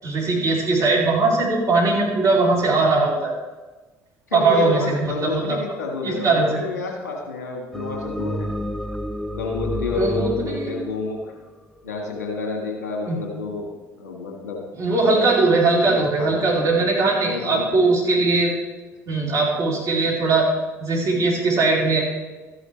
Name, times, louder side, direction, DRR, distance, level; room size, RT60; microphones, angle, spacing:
voice 1, 0.0-3.3 4.3-5.6 6.0-6.6 9.9-10.7 13.1-13.2 14.7-18.5 19.1-20.5 20.8-22.0, right 3 dB, 40° right, -4 dB, 3.8 m, -20 dB
voice 2, 4.3-8.5 9.3-11.3 11.8-13.7 14.0-14.6 15.1-15.3 15.8-16.4 17.2-17.9, left 4 dB, 75° left, 1 dB, 1.6 m, -29 dB
sound 1, 7.7-12.1, equal, ahead, 0.6 m, -30 dB
13.0 x 9.9 x 3.3 m, 1.2 s
figure-of-eight pair, 55°, 9 cm